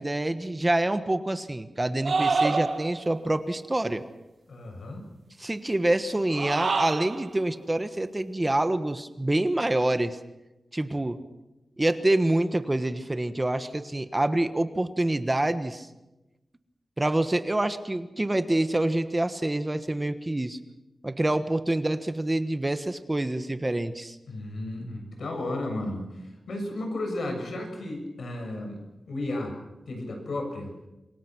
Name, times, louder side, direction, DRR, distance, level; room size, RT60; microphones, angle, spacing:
voice 1, 0.0-4.0 5.4-10.2 10.7-11.2 11.8-15.9 17.0-20.6 21.0-24.2, right 1 dB, 15° right, 10 dB, 1.3 m, -26 dB
sound 1, 2.0-3.1 6.2-7.3, right 4 dB, 60° right, 1.4 m, -27 dB
voice 2, 4.5-5.1 24.3-28.8 29.1-29.5 29.9-30.7, left 1 dB, 80° left, 3 dB, 7.2 m, -33 dB
28.0 x 23.5 x 6.2 m, 0.99 s
wide cardioid pair, 130°, 0 cm